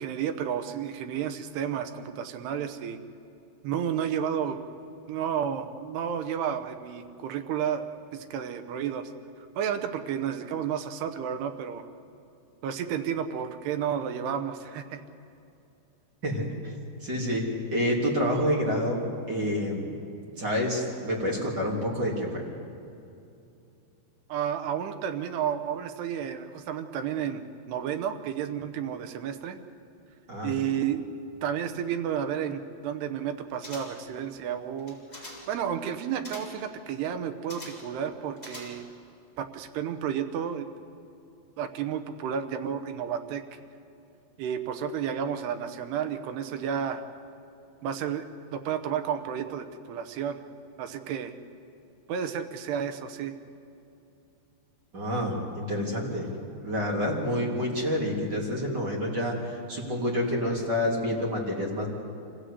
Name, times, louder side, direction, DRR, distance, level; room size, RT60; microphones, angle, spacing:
voice 1, 0.0-3.0 3.6-4.6 5.1-7.9 8.1-9.1 9.6-11.9 12.6-15.0 24.3-29.6 30.4-31.0 31.4-38.9 39.4-40.7 41.6-43.4 44.4-47.0 47.8-50.4 50.8-51.4 52.1-53.3, right 8 dB, 75° right, 7 dB, 2.8 m, -31 dB
voice 2, 16.2-16.7 17.0-17.4 17.7-19.0 19.3-19.9 20.4-22.4 30.3-30.5 54.9-56.3 56.6-61.9, equal, 25° right, -2 dB, 2.9 m, -28 dB
sound 1, 33.6-34.1 34.8-35.6 36.2-36.7 37.5-38.0 38.4-39.0 39.4-39.5, left 1 dB, 10° left, 3.6 m, -44 dB
25.5 x 16.5 x 8.3 m, 2.7 s
omnidirectional pair, 5.3 m